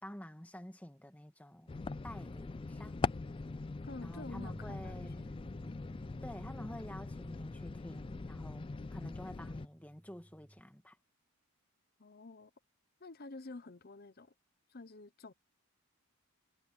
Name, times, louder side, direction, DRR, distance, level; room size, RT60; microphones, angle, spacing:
voice 1, 0.0-3.1 4.0-5.2 6.2-11.0, equal, 5° left, 1.6 m, -49 dB
sound 1, 1.7-9.7, left 3 dB, 25° left, 0.3 m, -41 dB
voice 2, 3.8-5.0 12.0-12.5 13.0-14.3 14.7-15.3, left 3 dB, 45° left, 0.8 m, -49 dB
Bass guitar, 4.4-10.6, right 1 dB, 15° right, 0.9 m, -55 dB
head